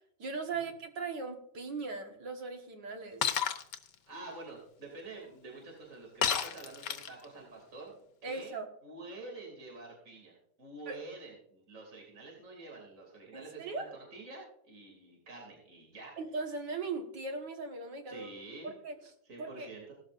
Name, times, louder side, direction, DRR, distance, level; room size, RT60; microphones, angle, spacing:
voice 1, 0.2-3.2 8.2-8.7 10.9-11.0 13.3-13.9 16.2-18.3 18.6-19.0 19.4-19.7, right 4 dB, 70° right, 3 dB, 2.2 m, -39 dB
Shatter, 3.2-3.8 6.2-7.2, left 8 dB, 70° left, 1.5 m, -30 dB
voice 2, 4.1-7.9 8.2-8.5 8.8-16.1 18.1-18.7 19.2-19.9, right 3 dB, 45° right, -2 dB, 3.1 m, -48 dB
17.5 x 13.0 x 2.5 m, 0.72 s
omnidirectional pair, 2.0 m